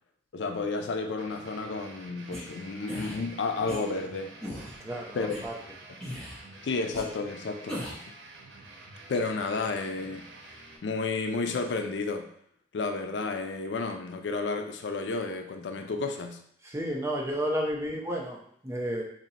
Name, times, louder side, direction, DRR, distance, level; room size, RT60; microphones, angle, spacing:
voice 1, 0.3-4.3 5.1-5.5 6.6-7.9 9.1-10.3 10.8-12.3 12.7-16.4, left 3 dB, 80° left, 6 dB, 0.4 m, -31 dB
sound 1, 1.2-10.8, right 2 dB, 90° right, 0.7 m, -49 dB
sound 2, 2.3-2.4 2.9-3.2 3.7-3.8 4.4-4.7 5.3-5.4 6.0-6.4 6.9-7.0 7.7-8.0, left 1 dB, 5° left, 1.0 m, -37 dB
voice 2, 4.8-5.6 16.6-19.0, equal, 15° right, -1 dB, 0.6 m, -32 dB
2.9 x 2.7 x 4.1 m, 0.67 s
head